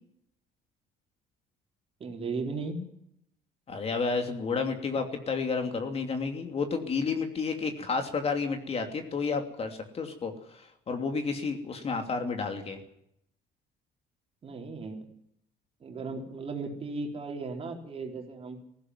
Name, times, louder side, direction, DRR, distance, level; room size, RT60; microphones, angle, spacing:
voice 1, 2.0-2.8 14.4-15.1 15.8-18.6, right 3 dB, 35° right, 2 dB, 4.0 m, -36 dB
voice 2, 3.7-12.8, left 4 dB, 35° left, 5 dB, 2.9 m, -31 dB
19.0 x 16.0 x 9.6 m, 0.74 s
cardioid pair, 125°, 17 cm